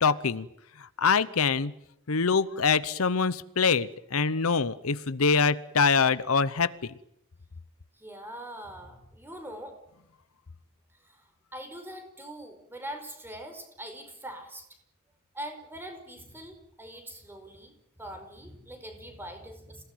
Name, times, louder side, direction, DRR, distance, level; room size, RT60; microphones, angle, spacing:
voice 1, 0.0-0.5 0.8-1.7 2.1-6.9, left 5 dB, 75° left, 16 dB, 0.9 m, -24 dB
voice 2, 8.0-9.8 11.0-14.6 15.3-17.7 18.0-19.8, right 1 dB, 10° right, 6 dB, 4.8 m, -42 dB
27.0 x 18.0 x 9.4 m, 0.81 s
head